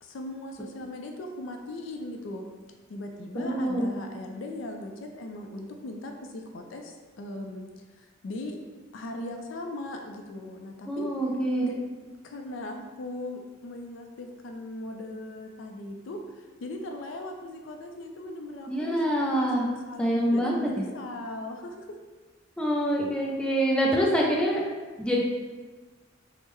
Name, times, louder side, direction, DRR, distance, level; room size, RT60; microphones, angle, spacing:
voice 1, 0.0-2.4 2.9-7.7 8.0-8.6 8.9-11.1 11.6-11.8 12.2-21.9, left 1 dB, 70° left, 4 dB, 0.4 m, -39 dB
voice 2, 3.3-3.9 10.9-11.7 18.7-19.7 20.0-20.6 22.6-24.6 25.0-25.2, equal, 5° left, -3 dB, 0.4 m, -25 dB
3.5 x 2.0 x 3.1 m, 1.3 s
head